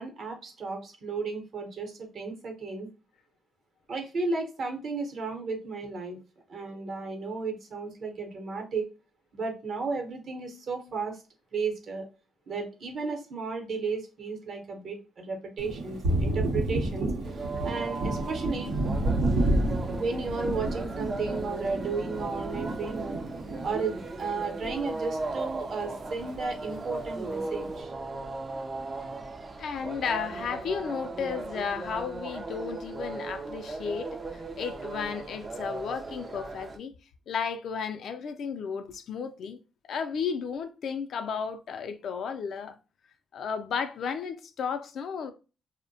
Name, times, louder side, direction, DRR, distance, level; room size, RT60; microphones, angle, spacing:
voice 1, 0.0-2.9 3.9-6.2 6.5-8.9 9.3-11.2 11.5-12.0 12.5-17.1 17.6-18.7 19.9-23.2 23.6-27.9, right 4 dB, 55° right, 0.8 m, -34 dB
Thunder, 15.6-25.3 25.7-26.8, right 1 dB, 90° right, 0.7 m, -30 dB
sound 1, 17.2-36.8, right 3 dB, 30° right, 0.4 m, -37 dB
voice 2, 29.6-36.9 37.3-39.6 39.8-42.8 43.3-45.3, left 6 dB, 65° left, 0.4 m, -33 dB
2.6 x 2.1 x 2.6 m
cardioid pair, 90°, 0 cm